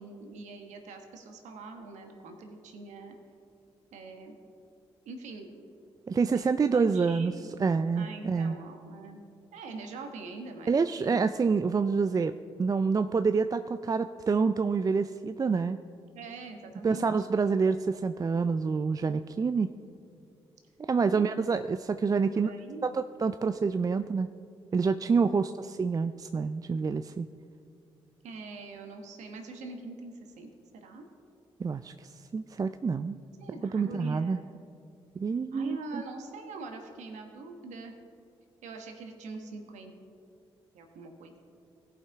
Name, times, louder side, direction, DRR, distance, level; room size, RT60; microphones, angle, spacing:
voice 1, 0.0-3.2 3.9-4.4 5.0-5.7 6.3-6.5 6.7-9.2 9.5-11.3 16.1-17.1 21.1-21.2 22.3-22.9 28.2-31.0 33.4-34.5 35.5-37.9 38.6-39.9 40.7-41.4, right 3 dB, 75° right, 4 dB, 1.2 m, -43 dB
voice 2, 6.1-7.3 7.6-8.6 10.7-12.3 12.6-15.8 16.8-19.7 20.9-22.5 22.8-24.3 24.7-27.3 31.6-33.2 33.7-34.4 35.2-35.8, right 5 dB, 30° right, 10 dB, 0.3 m, -27 dB
17.0 x 5.7 x 3.5 m, 2.5 s
hypercardioid pair, 45°, 12 cm